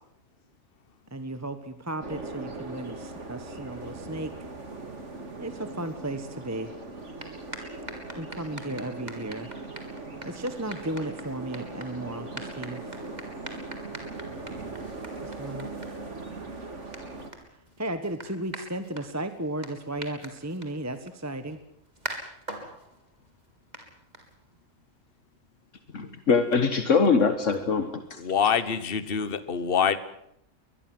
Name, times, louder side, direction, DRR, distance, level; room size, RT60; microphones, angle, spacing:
voice 1, 1.1-4.3 5.4-6.7 8.2-9.5 10.2-13.0 15.2-15.7 17.8-21.6, right 1 dB, 15° right, 10 dB, 1.2 m, -34 dB
sound 1, 2.0-17.3, right 2 dB, 65° right, 3.1 m, -40 dB
sound 2, 6.9-24.7, right 1 dB, 35° right, 3.8 m, -45 dB
voice 2, 25.9-28.5, left 5 dB, 70° left, 9 dB, 1.8 m, -23 dB
voice 3, 28.2-30.0, left 7 dB, 45° left, 14 dB, 1.4 m, -25 dB
23.5 x 20.5 x 7.8 m, 0.73 s
omnidirectional pair, 1.3 m